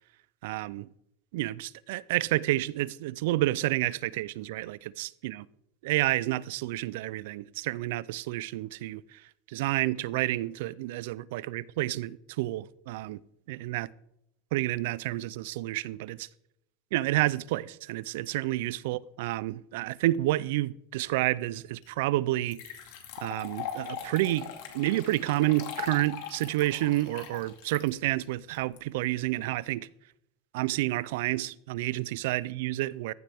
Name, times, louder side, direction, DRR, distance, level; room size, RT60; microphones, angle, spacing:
voice 1, 0.4-0.9 1.3-5.5 5.8-9.2 9.5-13.2 13.5-13.9 14.5-16.3 16.9-22.6 23.2-24.5 24.7-29.9 30.5-33.1, right 17 dB, 70° right, 0.4 m, -29 dB
sound 1, 21.8-21.9 22.5-28.8, left 8 dB, 65° left, 2.3 m, -40 dB
14.5 x 7.6 x 3.5 m
supercardioid pair, 145°, 0 cm